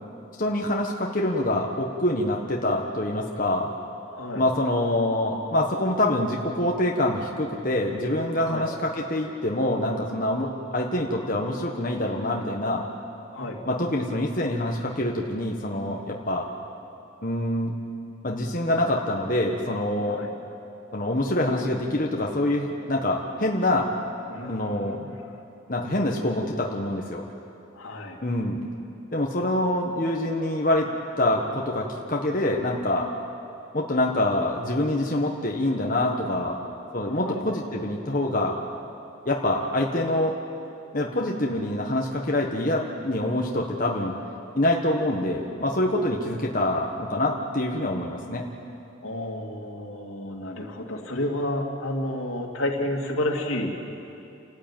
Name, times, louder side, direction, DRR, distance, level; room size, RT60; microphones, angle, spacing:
voice 1, 0.4-3.7 4.3-12.8 13.7-16.5 17.2-17.8 18.2-20.2 20.9-23.9 24.5-25.1 25.7-27.2 28.2-28.7 29.1-30.9 31.2-33.1 33.7-36.6 36.9-38.6 39.2-40.4 40.9-44.2 44.5-48.4, left 1 dB, 40° left, 0 dB, 1.5 m, -25 dB
voice 2, 4.1-4.5 8.5-8.6 13.3-13.6 20.1-20.3 24.3-24.8 27.7-28.2 37.1-37.5 49.0-53.7, left 1 dB, 85° left, 0 dB, 2.8 m, -30 dB
30.0 x 13.0 x 9.1 m, 2.8 s
head